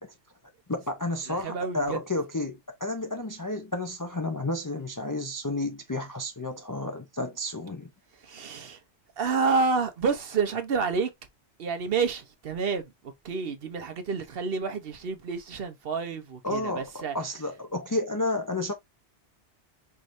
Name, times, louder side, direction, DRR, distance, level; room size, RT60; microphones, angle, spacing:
voice 1, 0.7-7.9 16.4-18.7, left 2 dB, 30° left, 0.3 m, -31 dB
voice 2, 1.3-2.0 8.2-8.8 9.2-11.1 11.6-12.8 13.2-17.1, right 5 dB, 60° right, 0.9 m, -29 dB
4.6 x 3.1 x 2.5 m
omnidirectional pair, 1.2 m